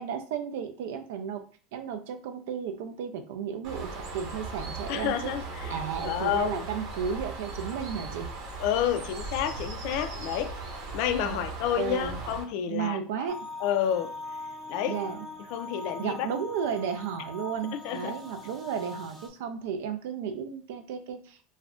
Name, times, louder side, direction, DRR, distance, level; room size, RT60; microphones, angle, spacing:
voice 1, 0.0-1.4 1.7-5.3 5.7-8.3 11.2-11.4 11.8-12.2 12.7-13.4 14.9-15.3 16.0-21.4, right 7 dB, 85° right, 0.4 m, -33 dB
Bird, 3.6-12.4, right 3 dB, 50° right, 0.7 m, -38 dB
voice 2, 4.9-6.6 8.6-10.6 10.9-13.0 13.6-14.1 14.7-15.0 15.5-16.3 17.8-18.1, left 10 dB, 60° left, 0.3 m, -29 dB
sound 1, 13.3-19.3, left 2 dB, 10° right, 0.6 m, -42 dB
2.4 x 2.1 x 3.6 m
supercardioid pair, 160°, 0 cm